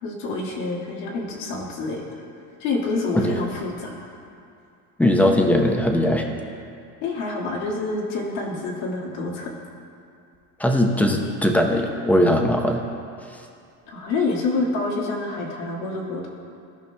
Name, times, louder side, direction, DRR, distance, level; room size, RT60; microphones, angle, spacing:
voice 1, 0.0-2.0 2.6-4.1 7.0-9.5 13.9-16.3, left 3 dB, 75° left, -2 dB, 1.8 m, -27 dB
voice 2, 5.0-6.3 10.6-12.8, left 1 dB, 5° left, 2 dB, 0.7 m, -19 dB
16.0 x 5.4 x 2.2 m, 2.5 s
supercardioid pair, 110°, 43 cm